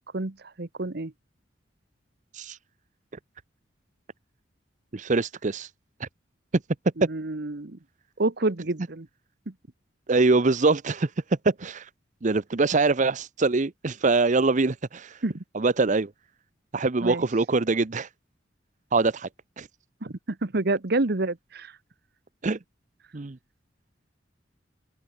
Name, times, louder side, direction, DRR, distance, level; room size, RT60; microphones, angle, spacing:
voice 1, 0.1-1.1 7.0-7.8 8.2-9.1 9.5-9.6 15.2-15.4 17.0-17.2 20.0-21.7, right 2 dB, 55° right, 1.2 m, -28 dB
voice 2, 4.9-5.7 6.0-6.1 7.0-7.1 10.1-11.9 12.2-15.2 15.5-16.1 16.7-18.1 18.9-19.3 19.6-19.7 22.4-22.6 23.1-23.4, right 3 dB, 40° right, 0.7 m, -23 dB
open air
head